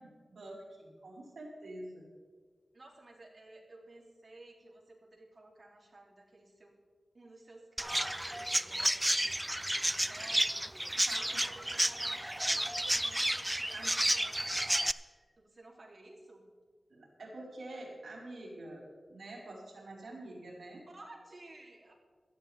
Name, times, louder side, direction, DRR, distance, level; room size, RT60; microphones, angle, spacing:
voice 1, 0.0-2.1 10.2-10.3 10.9-11.9 13.7-14.0 15.1-15.2 16.9-20.8, right 1 dB, 80° right, -5 dB, 4.8 m, -47 dB
voice 2, 2.7-6.7 7.1-9.2 9.6-10.6 10.9-14.3 15.4-16.5 20.9-21.9, right 2 dB, 50° right, -1 dB, 3.1 m, -54 dB
Chirp tweet, 7.8-14.9, right 1 dB, 10° right, 0.4 m, -31 dB
16.5 x 13.5 x 3.5 m, 1.5 s
wide cardioid pair, 60°, 0 cm